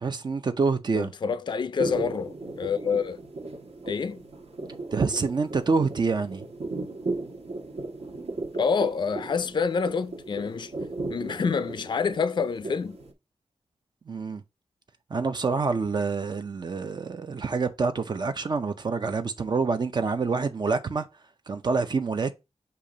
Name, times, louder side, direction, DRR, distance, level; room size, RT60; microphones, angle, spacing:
voice 1, 0.0-1.1 4.9-6.5 14.1-14.4 15.1-21.1 21.5-22.3, right 4 dB, 45° right, 0.5 m, -27 dB
voice 2, 0.9-3.2 3.9-4.2 8.5-10.7 11.1-13.0, left 5 dB, 45° left, 0.4 m, -27 dB
sound 1, 1.8-13.1, right 2 dB, 80° right, 1.5 m, -36 dB
6.9 x 2.8 x 5.0 m
wide cardioid pair, 140°, 11 cm